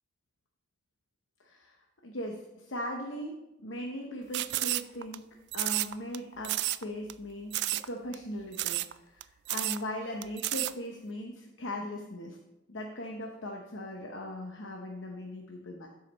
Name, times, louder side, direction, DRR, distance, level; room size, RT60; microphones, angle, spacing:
voice 1, 1.4-1.8 2.0-5.3 5.5-12.4 12.7-15.9, left 1 dB, 85° left, 1 dB, 0.8 m, -39 dB
sound 1, 4.3-5.2 5.5-6.2 6.4-6.8 7.1-7.2 7.5-7.9 8.1-8.2 8.5-8.9 9.2-9.3 9.5-9.8 10.2-10.7, right 16 dB, 60° right, 0.3 m, -31 dB
12.5 x 5.0 x 4.1 m, 1.0 s
head